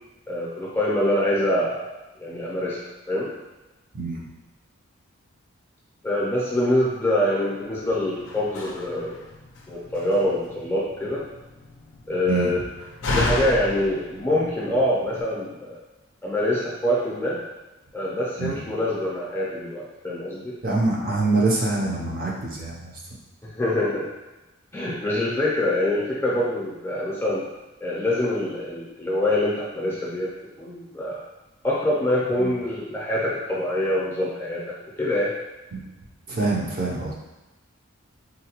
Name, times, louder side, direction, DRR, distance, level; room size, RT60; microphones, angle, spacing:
voice 1, 0.3-2.8 3.1-3.3 6.0-9.1 9.7-11.2 12.1-12.6 13.1-15.8 16.2-17.4 17.9-20.5 23.4-24.1 24.7-27.4 27.8-30.3 30.6-31.2 31.6-35.3, left 1 dB, 10° left, -6 dB, 0.5 m, -25 dB
Slam, 7.6-15.2, left 2 dB, 60° left, 0.4 m, -33 dB
voice 2, 20.6-22.9 32.4-32.5 35.7-35.8 36.3-37.1, right 3 dB, 40° right, -4 dB, 0.6 m, -25 dB
3.9 x 2.2 x 2.9 m, 1.1 s
head